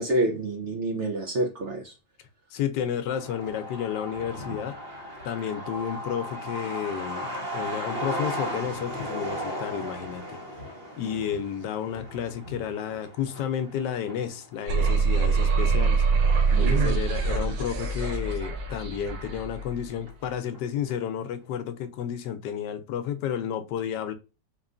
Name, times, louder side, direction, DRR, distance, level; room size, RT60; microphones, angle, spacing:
voice 1, 0.0-1.9 16.5-17.0, right 1 dB, 55° right, 0.9 m, -27 dB
voice 2, 2.5-4.8 5.2-10.4 11.0-16.0 16.6-24.1, left 9 dB, 80° left, 1.2 m, -31 dB
Truck, 3.1-18.2 18.6-18.7 18.9-19.8 20.1-20.2 20.5-20.9, equal, 35° right, 1.4 m, -37 dB
sound 1, 14.7-19.8, right 4 dB, 90° right, 1.5 m, -24 dB
4.5 x 3.0 x 2.5 m
omnidirectional pair, 1.9 m